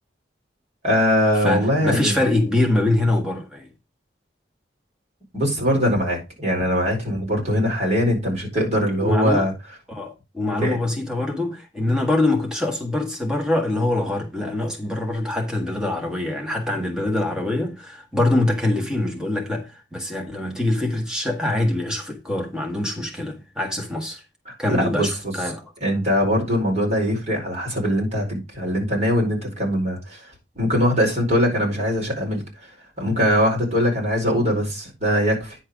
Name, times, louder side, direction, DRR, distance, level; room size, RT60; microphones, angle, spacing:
voice 1, 0.8-2.2 5.3-9.5 10.6-10.8 24.5-25.1 25.8-30.3 30.5-32.4 33.0-35.6, equal, 35° right, 4.8 m, -21 dB
voice 2, 1.3-3.7 8.8-9.5 9.9-24.2 24.6-25.6, left 1 dB, 5° right, 1.7 m, -24 dB
9.9 x 4.5 x 5.0 m
head